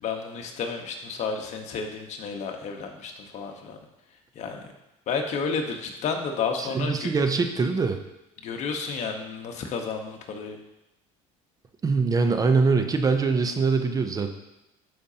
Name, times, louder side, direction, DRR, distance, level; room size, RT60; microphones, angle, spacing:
voice 1, 0.0-3.8 4.3-4.6 5.1-7.1 8.4-10.6, left 5 dB, 55° left, 3 dB, 1.2 m, -31 dB
voice 2, 6.6-8.0 11.8-14.3, right 4 dB, 25° right, 7 dB, 0.6 m, -23 dB
12.5 x 5.1 x 2.9 m, 0.93 s
cardioid pair, 115°, 14 cm